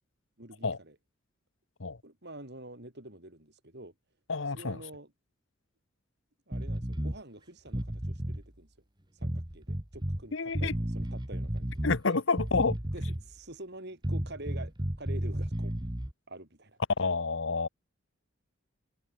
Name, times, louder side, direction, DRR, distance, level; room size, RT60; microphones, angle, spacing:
voice 1, 0.4-1.0 2.0-3.9 4.5-5.1 6.5-8.7 9.1-12.2 12.9-15.7 16.3-16.8, right 1 dB, 55° right, 7.5 m, -47 dB
voice 2, 4.3-4.8 10.3-10.7 11.8-12.8 17.0-17.7, left 4 dB, 65° left, 1.0 m, -29 dB
sound 1, 6.5-7.2 7.7-8.4 9.2-10.2 10.5-12.0 12.4-13.3 14.0-16.1, equal, 20° right, 2.0 m, -33 dB
head